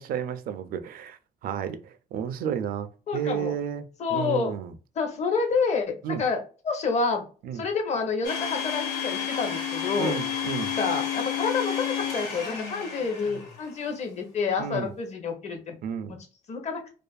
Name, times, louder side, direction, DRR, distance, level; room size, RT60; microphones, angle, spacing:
voice 1, 0.0-3.8 4.1-4.7 6.0-6.2 7.4-7.7 10.0-10.8 14.6-14.9 15.8-16.2, right 8 dB, 60° right, 0.4 m, -32 dB
voice 2, 3.1-3.5 4.0-4.6 5.0-7.2 7.5-10.2 10.8-15.8 16.1-16.2 16.5-16.8, left 5 dB, 40° left, 0.7 m, -28 dB
Domestic sounds home sounds, 8.2-13.8, left 8 dB, 90° left, 0.9 m, -31 dB
2.5 x 2.4 x 2.3 m
cardioid pair, 110°, 17 cm